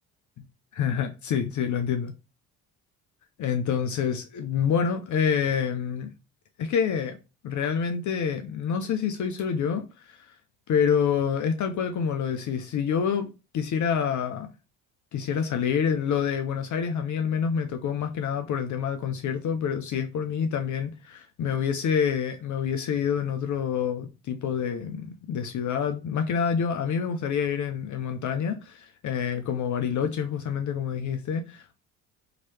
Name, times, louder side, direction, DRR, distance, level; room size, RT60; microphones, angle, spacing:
voice 1, 0.8-2.1 3.4-6.1 6.6-7.2 7.4-10.3 10.7-13.3 13.5-14.5 15.1-31.8, left 7 dB, 45° left, 0.6 m, -27 dB
3.0 x 2.9 x 2.7 m
hypercardioid pair, 55°, 44 cm